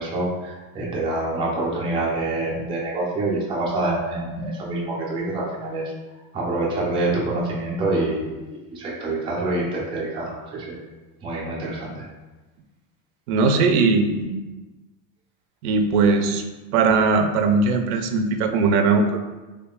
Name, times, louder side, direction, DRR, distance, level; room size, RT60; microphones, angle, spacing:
voice 1, 0.0-5.9 6.3-10.8 11.2-12.0, right 2 dB, 15° right, -4 dB, 0.4 m, -26 dB
voice 2, 13.3-14.3 15.6-16.4 16.7-19.2, right 4 dB, 90° right, 5 dB, 0.6 m, -19 dB
3.5 x 3.2 x 2.3 m, 1.2 s
supercardioid pair, 150°, 43 cm